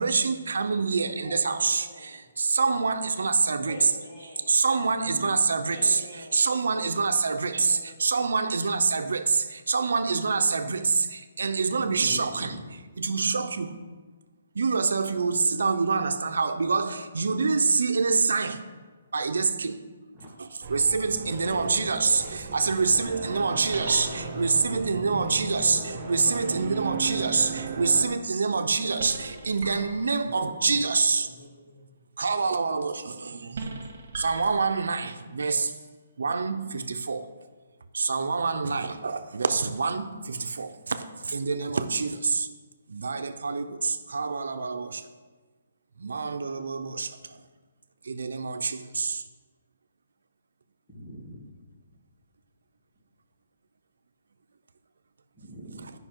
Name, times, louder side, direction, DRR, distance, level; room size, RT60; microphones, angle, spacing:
voice 1, 0.0-3.9 4.5-12.5 13.0-13.7 14.5-18.6 19.1-19.9 20.4-31.3 32.2-35.7 36.2-37.3 37.9-42.5 42.9-45.1 46.0-47.4 48.0-49.2, right 4 dB, 85° right, 8 dB, 0.6 m, -26 dB
voice 2, 1.2-2.2 3.6-4.6 5.7-6.4 7.4-7.9 21.5-23.2 23.8-26.6 27.1-28.2 28.9-29.7 31.1-31.9, left 1 dB, 50° left, -4 dB, 2.7 m, -44 dB
voice 3, 5.0-5.6 11.8-12.8 20.1-20.3 24.9-25.2 28.5-28.7 30.1-30.8 50.9-51.6 55.3-55.9, right 1 dB, 5° left, -7 dB, 1.6 m, -43 dB
sound 1, 20.6-28.1, right 5 dB, 30° right, 0.9 m, -37 dB
sound 2, 21.1-21.6 22.2-22.3 23.7-24.6 27.3-27.8 28.9-30.5 32.9-33.2 33.5-35.1 35.6-35.9 36.8-36.9, right 3 dB, 55° right, 1.5 m, -40 dB
9.8 x 5.5 x 4.5 m, 1.3 s
hypercardioid pair, 170°, 0 cm